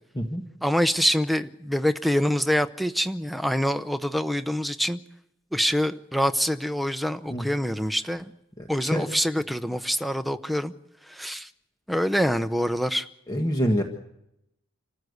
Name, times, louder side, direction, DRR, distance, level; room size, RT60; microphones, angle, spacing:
voice 1, 0.6-5.0 5.5-8.3 8.7-10.7 11.1-11.5 11.9-13.1, equal, ahead, 0.7 m, -25 dB
voice 2, 13.3-13.8, equal, 20° left, 1.5 m, -25 dB
26.5 x 15.0 x 8.0 m
head